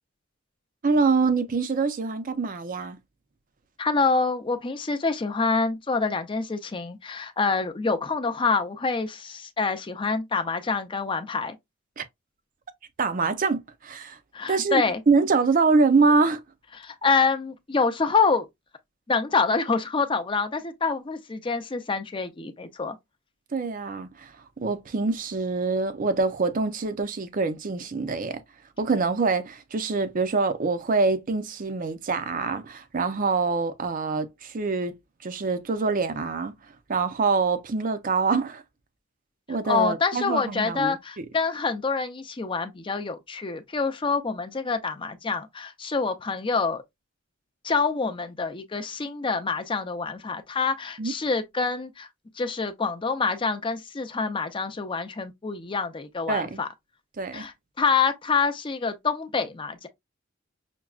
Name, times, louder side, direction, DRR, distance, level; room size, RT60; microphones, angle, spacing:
voice 1, 0.8-3.0 12.0-12.1 13.0-14.2 14.5-16.4 23.5-24.3 24.6-28.4 28.8-35.0 35.2-36.5 36.9-38.6 39.5-41.2 51.0-51.1 56.3-56.6 57.2-57.5, right 4 dB, 40° right, 0.5 m, -25 dB
voice 2, 3.8-11.6 14.3-15.0 16.7-18.5 19.1-23.0 39.6-46.8 47.6-52.1 52.4-56.7 57.3-59.9, left 4 dB, 25° left, 0.5 m, -26 dB
6.0 x 2.2 x 2.3 m
head